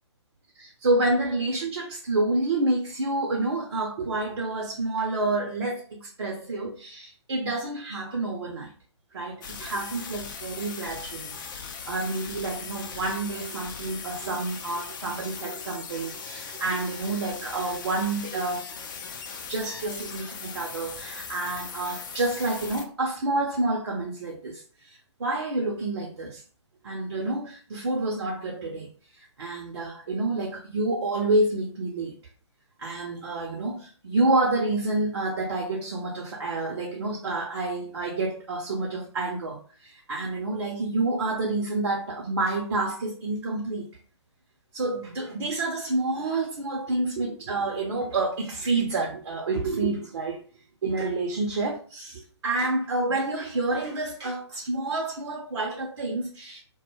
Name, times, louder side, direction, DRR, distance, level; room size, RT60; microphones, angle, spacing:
voice 1, 0.5-8.7 9.1-11.3 11.9-18.7 19.5-26.4 26.8-32.2 32.8-43.9 44.7-50.4 50.8-56.6, right 2 dB, 55° right, 0.6 m, -28 dB
sound 1, 9.4-22.8, left 6 dB, 45° left, 0.4 m, -39 dB
2.2 x 2.0 x 3.1 m
figure-of-eight pair, 130°, 15 cm